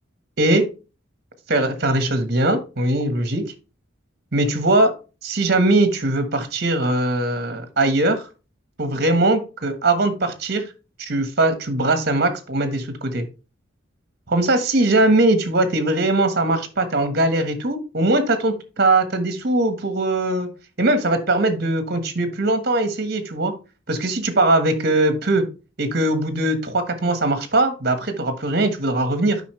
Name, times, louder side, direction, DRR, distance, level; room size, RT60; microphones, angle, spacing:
voice 1, 0.4-0.7 1.5-3.4 4.3-4.9 5.2-8.2 8.8-10.6 11.0-13.2 14.3-20.5 20.8-23.5 23.9-25.4 25.8-29.4, right 2 dB, 50° right, 9 dB, 1.4 m, -20 dB
8.3 x 5.6 x 3.2 m, 0.31 s
head